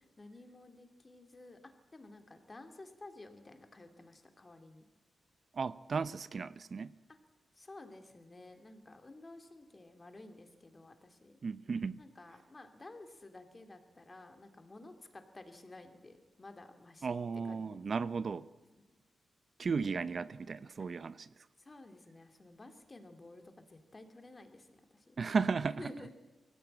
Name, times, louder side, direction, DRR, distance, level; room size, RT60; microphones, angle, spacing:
voice 1, 0.0-4.8 7.1-7.2 7.6-11.4 12.0-17.2 17.5-17.8 21.6-23.4 23.7-25.2 25.8-26.2, left 2 dB, 25° left, 2.4 m, -53 dB
voice 2, 5.5-6.9 11.4-12.0 17.0-18.5 19.6-21.3 25.2-25.8, right 5 dB, 45° right, 0.6 m, -35 dB
23.0 x 16.5 x 8.8 m
wide cardioid pair, 135°, 0 cm